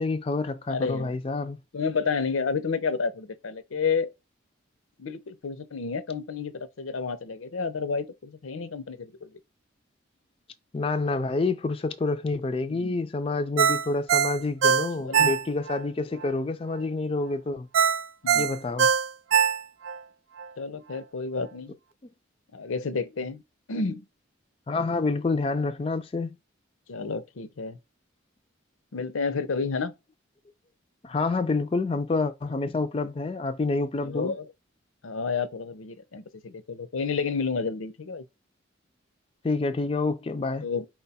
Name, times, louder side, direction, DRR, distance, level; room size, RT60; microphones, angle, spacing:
voice 1, 0.0-1.6 10.7-17.7 18.3-18.9 24.7-26.3 31.0-34.3 39.4-40.6, left 3 dB, 30° left, 0.3 m, -28 dB
voice 2, 0.7-1.1 1.7-4.1 5.0-9.3 12.7-13.0 15.0-15.3 18.2-18.5 20.6-21.7 22.5-23.4 23.7-24.0 26.9-27.8 28.9-29.9 34.0-34.5 35.0-38.2 40.6-40.9, left 5 dB, 85° left, 0.6 m, -30 dB
Ringtone, 13.6-15.8 16.2-16.3 17.7-20.0 20.4-20.5, right 7 dB, 80° right, 0.4 m, -22 dB
4.4 x 2.2 x 4.1 m
head